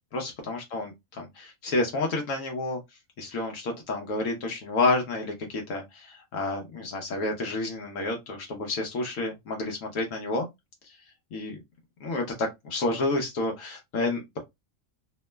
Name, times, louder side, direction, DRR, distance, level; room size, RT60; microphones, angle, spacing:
voice 1, 0.1-2.8 3.2-10.5 11.3-11.6 12.0-14.4, left 2 dB, 70° left, 1.1 m, -30 dB
2.9 x 2.0 x 3.2 m
omnidirectional pair, 1.4 m